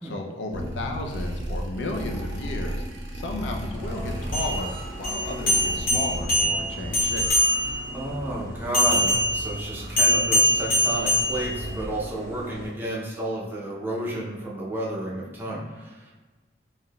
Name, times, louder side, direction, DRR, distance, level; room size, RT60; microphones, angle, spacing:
voice 1, 0.0-2.8 3.1-7.3, left 2 dB, 85° left, 2 dB, 0.5 m, -33 dB
sound 1, 0.5-6.6, equal, 80° right, 0.5 m, -34 dB
sound 2, 3.7-12.7, equal, 15° left, 0.9 m, -39 dB
sound 3, 4.2-7.9 8.7-11.9, left 1 dB, 45° left, 1.0 m, -23 dB
voice 2, 7.9-16.0, right 1 dB, 10° right, -5 dB, 0.5 m, -31 dB
3.7 x 2.6 x 2.3 m, 1.3 s
head